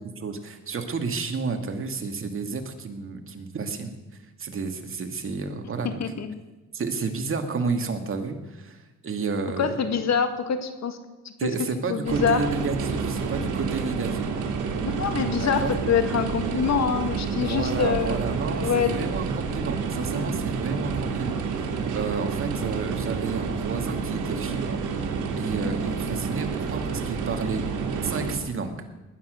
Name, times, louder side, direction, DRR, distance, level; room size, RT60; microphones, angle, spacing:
voice 1, 0.2-4.0 4.4-6.0 6.7-9.8 11.4-14.3 15.4-15.7 17.4-24.8 25.4-27.6 28.0-28.8, right 4 dB, 45° right, 5 dB, 2.3 m, -31 dB
voice 2, 6.0-6.4 9.6-11.0 11.9-12.4 14.8-18.2 18.6-19.0 25.6-25.9, left 7 dB, 60° left, 8 dB, 2.0 m, -25 dB
sound 1, 12.1-28.4, right 5 dB, 80° right, 2.9 m, -29 dB
19.5 x 10.0 x 6.5 m, 1.2 s
cardioid pair, 90°, 30 cm